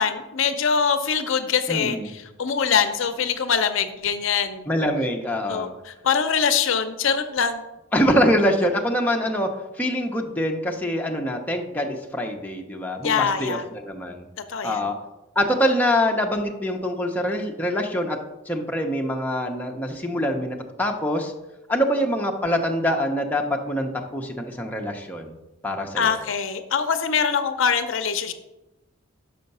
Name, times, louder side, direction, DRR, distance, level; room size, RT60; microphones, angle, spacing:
voice 1, 0.0-4.6 5.5-7.6 13.0-13.6 14.5-14.8 26.0-28.3, left 6 dB, 65° left, 9 dB, 0.5 m, -23 dB
voice 2, 1.7-2.1 4.7-5.7 7.9-9.5 9.8-14.3 14.6-15.0 15.4-18.2 18.5-21.3 21.7-25.4 25.6-26.2, equal, 10° left, 1 dB, 0.7 m, -24 dB
5.6 x 5.5 x 5.4 m, 0.97 s
head